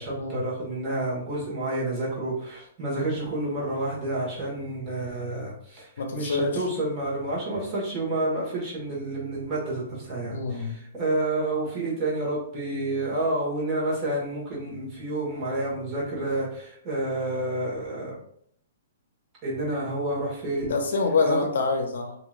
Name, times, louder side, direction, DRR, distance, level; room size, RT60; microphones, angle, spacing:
voice 1, 0.0-18.2 19.4-20.7 21.2-21.4, right 2 dB, 30° right, -6 dB, 1.4 m, -29 dB
voice 2, 6.0-6.6 10.3-10.8 20.7-22.2, left 4 dB, 75° left, 3 dB, 0.5 m, -26 dB
2.9 x 2.7 x 2.4 m, 0.67 s
hypercardioid pair, 140°, 0 cm